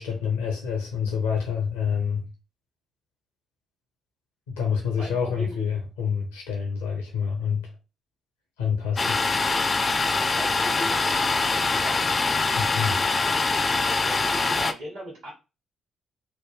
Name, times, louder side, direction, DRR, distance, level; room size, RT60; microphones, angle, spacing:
voice 1, 0.0-2.2 4.5-7.7 8.6-9.2 12.5-13.0, left 7 dB, 80° left, 0.6 m, -27 dB
voice 2, 5.0-5.6 10.1-12.0 13.3-15.3, right 1 dB, 70° right, 1.1 m, -39 dB
Domestic sounds home sounds, 9.0-14.7, left 3 dB, 35° left, 0.3 m, -24 dB
3.3 x 2.1 x 3.1 m
figure-of-eight pair, 40°, 0 cm